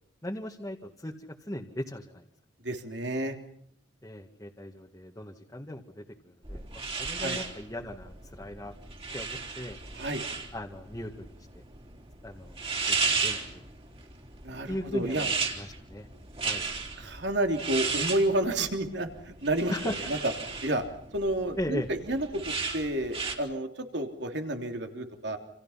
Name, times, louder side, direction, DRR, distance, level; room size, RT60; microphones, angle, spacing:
voice 1, 0.2-2.2 4.0-8.7 9.1-9.8 10.5-11.3 11.5-11.6 12.2-13.7 14.7-16.1 16.4-16.6 19.7-20.0 21.6-21.9, left 1 dB, 15° left, 0 dB, 1.9 m, -38 dB
voice 2, 2.6-3.4 7.1-7.4 10.0-10.2 14.4-15.3 17.0-19.7 20.1-20.2 20.6-20.8 21.1-25.4, right 1 dB, 65° right, 5 dB, 3.3 m, -30 dB
sound 1, 6.4-23.4, right 4 dB, 30° right, 4.1 m, -34 dB
30.0 x 28.0 x 5.9 m, 0.64 s
head